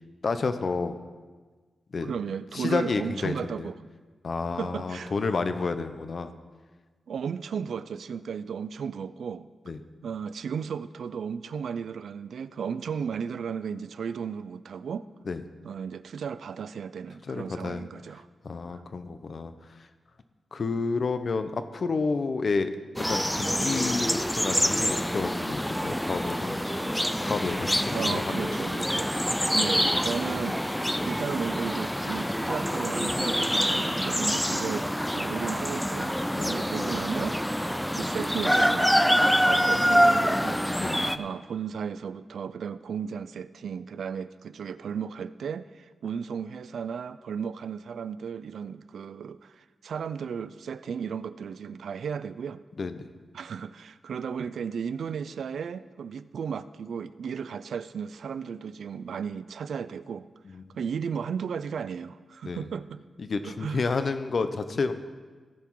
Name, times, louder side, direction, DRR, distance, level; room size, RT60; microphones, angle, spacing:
voice 1, 0.2-0.9 1.9-2.1 2.5-3.7 4.2-6.3 9.7-9.8 15.3-15.4 17.3-17.8 18.4-19.5 20.5-22.7 23.1-26.5 27.2-28.5 36.3-36.5 40.8-41.1 52.8-53.1 60.5-60.8 62.4-62.7 63.2-64.9, left 4 dB, 40° left, 10 dB, 0.6 m, -30 dB
voice 2, 2.0-3.9 4.6-5.5 7.1-9.5 10.0-15.1 15.6-18.3 18.7-18.8 27.9-29.1 29.5-37.4 37.9-40.6 41.2-52.6 53.3-60.3 60.8-63.0 63.4-63.9, right 6 dB, 75° right, 15 dB, 0.3 m, -35 dB
sound 1, 23.0-41.2, equal, ahead, 0.3 m, -26 dB
17.0 x 5.9 x 4.6 m, 1.4 s
wide cardioid pair, 180°, 0 cm